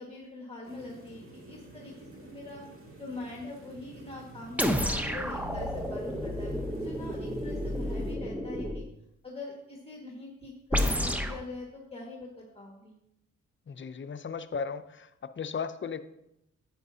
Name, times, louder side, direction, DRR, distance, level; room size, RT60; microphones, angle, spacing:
voice 1, 0.0-2.6 3.0-8.8 9.2-12.9, left 2 dB, 20° left, -2 dB, 1.8 m, -43 dB
Ambiance Atmosphere Cave Loop Stereo, 0.6-8.2, right 1 dB, 45° right, 2.5 m, -49 dB
sound 1, 4.6-8.9 10.7-11.4, equal, 5° right, 0.8 m, -31 dB
voice 2, 13.7-15.1 15.4-16.0, left 6 dB, 40° left, 10 dB, 0.6 m, -35 dB
10.5 x 8.8 x 2.8 m, 0.82 s
cardioid pair, 70°, 30 cm